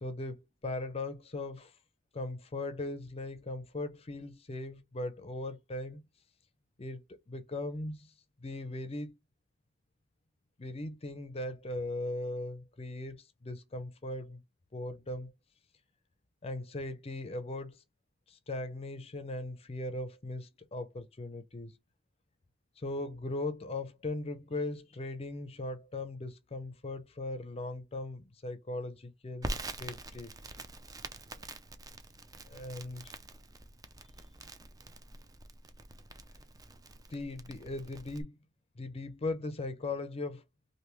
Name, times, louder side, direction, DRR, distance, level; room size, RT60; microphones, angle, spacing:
voice 1, 0.0-1.7 2.1-6.0 6.8-8.1 8.4-9.2 10.6-14.4 14.7-15.3 16.4-17.8 18.3-21.8 22.8-30.3 32.5-33.2 37.1-38.4 38.8-40.4, left 2 dB, 30° left, 0.5 m, -39 dB
Crackle, 29.4-38.2, right 2 dB, 20° right, 0.4 m, -45 dB
3.3 x 2.6 x 3.0 m
head